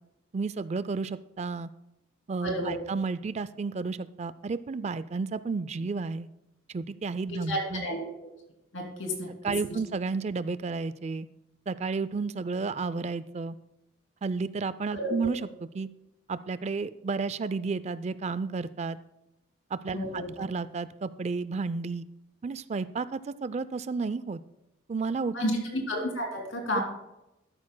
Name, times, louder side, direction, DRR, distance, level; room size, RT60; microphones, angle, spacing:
voice 1, 0.3-1.7 2.3-6.3 6.7-7.9 9.4-11.3 11.7-13.6 14.2-15.4 15.7-15.9 16.3-19.0 19.7-22.1 22.4-24.4 24.9-25.4 26.7-26.8, right 4 dB, 35° right, 15 dB, 0.3 m, -32 dB
voice 2, 2.4-2.7 7.3-8.3 8.7-9.3 9.6-9.7 14.9-15.1 19.9-20.3 25.3-26.8, equal, 80° left, 0 dB, 2.8 m, -31 dB
13.0 x 12.0 x 2.2 m, 0.92 s
head